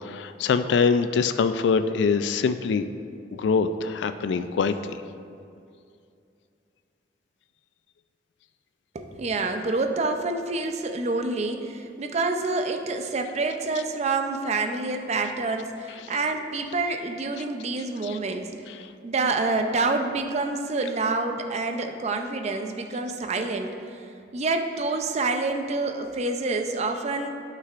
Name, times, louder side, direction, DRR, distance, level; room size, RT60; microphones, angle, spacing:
voice 1, 0.0-2.9 3.3-4.7 18.0-18.2 18.8-18.9, left 5 dB, 85° left, 10 dB, 0.3 m, -24 dB
voice 2, 8.9-18.5 19.0-24.1 24.3-27.3, right 3 dB, 40° right, 5 dB, 0.5 m, -27 dB
11.5 x 5.7 x 2.5 m, 2.5 s
head